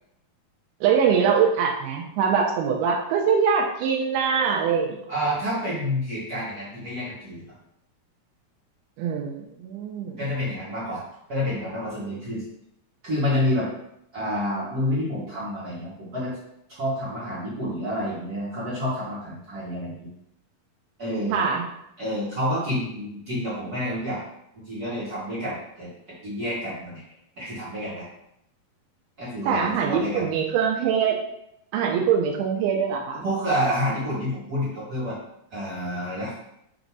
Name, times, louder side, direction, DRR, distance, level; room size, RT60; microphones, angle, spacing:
voice 1, 0.8-5.0 9.0-10.1 21.3-21.6 29.5-31.2 31.7-33.3, right 6 dB, 85° right, 0 dB, 2.6 m, -23 dB
voice 2, 5.1-7.4 10.0-11.0 11.3-12.4 13.0-13.7 14.1-16.3 16.8-20.1 21.0-21.4 22.0-24.2 24.6-25.9 26.2-27.0 27.4-28.0 29.2-30.3 33.2-35.2 35.5-36.3, equal, 45° right, -10 dB, 1.2 m, -28 dB
7.6 x 2.6 x 4.7 m, 0.78 s
omnidirectional pair, 4.4 m